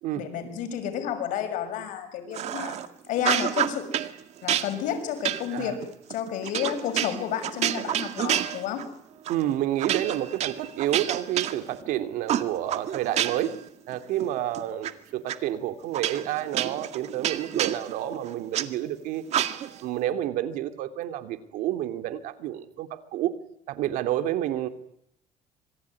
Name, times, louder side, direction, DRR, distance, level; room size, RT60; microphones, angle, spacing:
voice 1, 0.1-2.8 3.1-3.9 4.4-5.8 6.1-8.8, left 8 dB, 80° left, 7 dB, 6.5 m, -31 dB
sound 1, 2.3-2.9 3.2-4.1 4.5-8.9 9.2-9.4 9.8-11.9 12.3-13.6 13.9-14.9 15.3-15.4 15.9-18.7 19.3-19.8, right 11 dB, 55° right, 2.0 m, -29 dB
voice 2, 9.3-13.6 13.9-19.2 19.8-23.3 23.7-24.7, right 12 dB, 85° right, 8 dB, 2.8 m, -29 dB
26.5 x 22.5 x 9.7 m, 0.74 s
cardioid pair, 135°, 13 cm